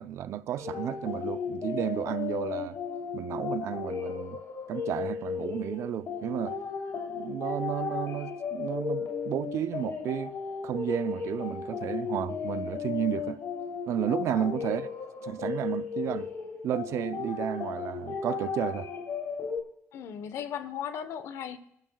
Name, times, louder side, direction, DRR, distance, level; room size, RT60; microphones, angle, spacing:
voice 1, 0.0-2.8 3.1-4.4 4.7-6.6 7.1-10.3 10.6-13.4 13.9-14.9 15.2-16.3 16.6-18.9, right 11 dB, 75° right, 0.6 m, -32 dB
sound 1, 0.6-19.6, left 6 dB, 60° left, 3.1 m, -35 dB
voice 2, 14.3-14.6 19.9-21.6, left 8 dB, 75° left, 1.0 m, -37 dB
20.0 x 13.0 x 2.3 m
cardioid pair, 105°, 5 cm